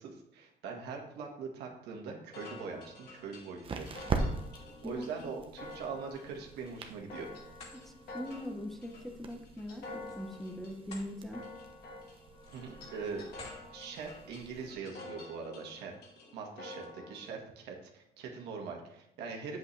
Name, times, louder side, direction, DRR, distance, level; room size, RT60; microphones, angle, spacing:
voice 1, 0.0-3.9 4.8-7.3 12.5-13.3 13.7-15.9 16.3-19.6, right 5 dB, 80° right, 1 dB, 1.7 m, -42 dB
sound 1, 2.3-17.3, left 2 dB, 70° left, 2.8 m, -49 dB
sound 2, 2.3-14.7, right 3 dB, 30° right, 1.0 m, -43 dB
voice 2, 4.8-5.3 7.7-9.8 10.1-11.4, left 1 dB, ahead, 2 dB, 1.1 m, -41 dB
sound 3, 6.5-7.0 7.4-7.8 9.9-11.1 11.6-11.8 12.3-12.8 13.3-13.6, left 3 dB, 40° left, 2.9 m, -52 dB
8.5 x 7.7 x 3.3 m, 0.78 s
cardioid pair, 110°, 17 cm